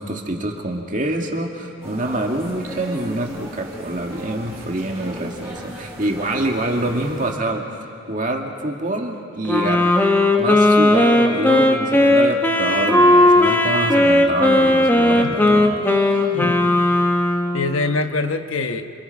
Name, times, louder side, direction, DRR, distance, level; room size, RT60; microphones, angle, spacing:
voice 1, 0.0-7.7 8.1-16.3, right 1 dB, 40° right, 2 dB, 2.1 m, -26 dB
sound 1, 1.8-7.3, right 1 dB, 10° right, 4.3 m, -36 dB
Wind instrument woodwind instrument, 9.5-17.7, left 1 dB, 10° left, 1.2 m, -16 dB
voice 2, 15.2-15.7 16.3-16.8 17.5-18.9, left 3 dB, 80° left, 7 dB, 1.2 m, -25 dB
27.0 x 27.0 x 5.5 m, 2.6 s
head